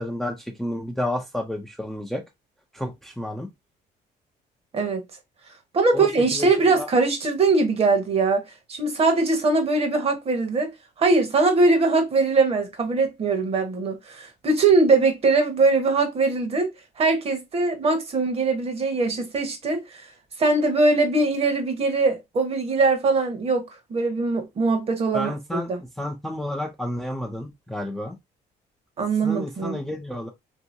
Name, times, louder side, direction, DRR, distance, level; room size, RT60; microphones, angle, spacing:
voice 1, 0.0-2.2 2.7-3.5 5.9-6.1 6.4-6.5 6.8-6.9 25.1-25.7 26.0-28.1 29.2-30.3, left 1 dB, ahead, 0.5 m, -30 dB
voice 2, 5.7-8.4 8.7-10.7 11.0-16.7 17.0-20.0 20.4-25.8 29.0-29.8, right 3 dB, 35° right, 0.9 m, -21 dB
2.8 x 2.7 x 2.5 m
cardioid pair, 110°, 17 cm